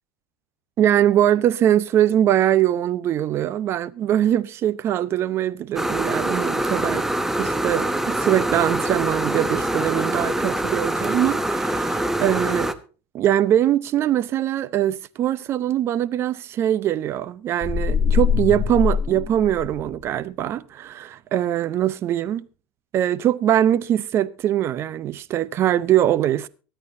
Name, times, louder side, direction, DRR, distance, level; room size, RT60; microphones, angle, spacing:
voice 1, 0.8-7.1 7.4-12.7 13.1-22.4 22.9-26.5, right 11 dB, 40° right, 0.7 m, -22 dB
sound 1, 5.8-12.7, right 1 dB, 5° right, 0.9 m, -24 dB
sound 2, 17.6-20.0, left 7 dB, 25° left, 0.9 m, -23 dB
24.0 x 9.1 x 2.7 m
supercardioid pair, 115°, 7 cm